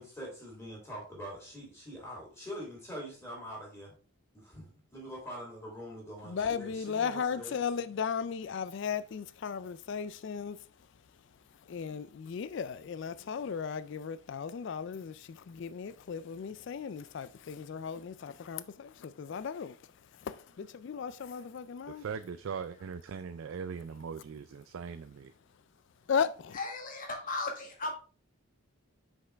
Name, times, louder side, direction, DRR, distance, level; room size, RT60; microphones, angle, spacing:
voice 1, 0.0-3.9 4.3-7.6, equal, 10° left, 3.0 m, -44 dB
voice 2, 6.2-10.6 11.7-19.8 20.2-22.0 26.1-26.6, left 6 dB, 55° left, 0.3 m, -36 dB
voice 3, 21.9-25.3, right 6 dB, 60° right, 0.3 m, -40 dB
voice 4, 26.5-27.9, left 3 dB, 35° left, 1.6 m, -36 dB
6.0 x 5.3 x 3.4 m
head